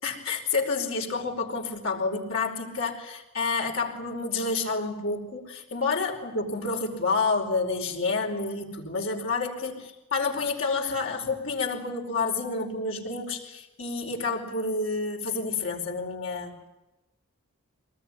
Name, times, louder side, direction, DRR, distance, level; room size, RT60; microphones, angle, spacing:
voice 1, 0.0-16.7, left 4 dB, 60° left, 1 dB, 4.9 m, -29 dB
25.0 x 19.5 x 10.0 m, 0.99 s
head